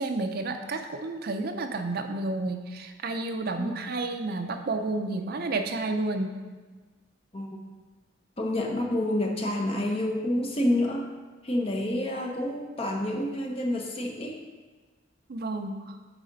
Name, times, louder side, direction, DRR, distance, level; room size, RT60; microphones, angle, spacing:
voice 1, 0.0-6.4 15.3-16.0, right 2 dB, 50° right, 6 dB, 0.5 m, -31 dB
voice 2, 8.4-11.1 11.4-14.4, left 1 dB, 30° left, 1 dB, 0.8 m, -28 dB
9.0 x 4.2 x 3.9 m, 1.3 s
head